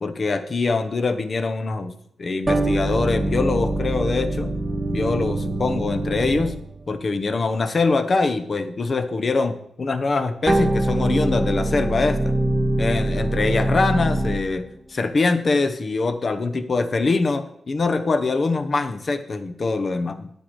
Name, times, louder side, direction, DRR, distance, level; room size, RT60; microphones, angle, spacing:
voice 1, 0.0-1.9 2.2-4.5 4.9-6.5 6.9-12.3 12.8-14.6 14.9-20.3, left 3 dB, 40° left, 9 dB, 0.9 m, -23 dB
sound 1, 2.5-6.9 10.5-14.6, right 1 dB, 20° right, 0.8 m, -23 dB
9.4 x 9.0 x 4.7 m, 0.69 s
wide cardioid pair, 105°, 0 cm